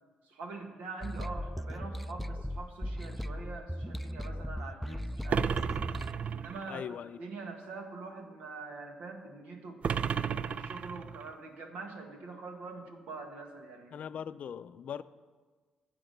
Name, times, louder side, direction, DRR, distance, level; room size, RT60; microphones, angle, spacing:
voice 1, 0.2-5.7 6.3-6.8 7.2-9.8 10.2-14.0, right 3 dB, 80° right, 1.7 m, -44 dB
sound 1, 1.0-6.1, equal, 5° left, 0.4 m, -37 dB
sound 2, 5.3-6.8 9.8-11.3, right 7 dB, 60° right, 0.4 m, -33 dB
voice 2, 6.7-7.2 13.9-15.0, left 8 dB, 65° left, 0.5 m, -40 dB
13.5 x 8.4 x 5.4 m
supercardioid pair, 60°, 3 cm